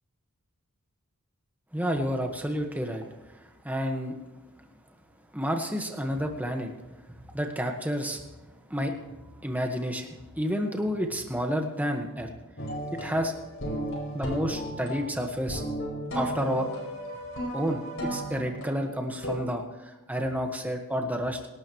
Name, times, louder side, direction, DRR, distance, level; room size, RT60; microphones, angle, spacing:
voice 1, 1.7-4.2 5.3-6.7 7.1-8.2 8.7-12.3 13.0-13.3 14.1-15.6 16.1-16.7 17.5-21.4, equal, 5° right, 3 dB, 1.5 m, -30 dB
sound 1, 12.6-19.4, equal, 60° left, 4.8 m, -35 dB
25.5 x 12.0 x 3.2 m, 1.1 s
head